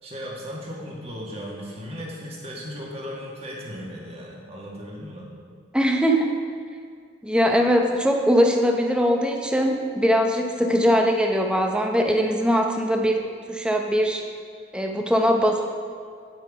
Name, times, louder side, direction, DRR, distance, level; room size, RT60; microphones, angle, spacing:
voice 1, 0.0-5.3, equal, 35° right, -3 dB, 1.9 m, -36 dB
voice 2, 5.7-6.3 7.2-13.2 13.5-14.2 14.7-15.6, equal, 5° right, 2 dB, 0.8 m, -21 dB
8.9 x 7.9 x 5.1 m, 2.2 s
head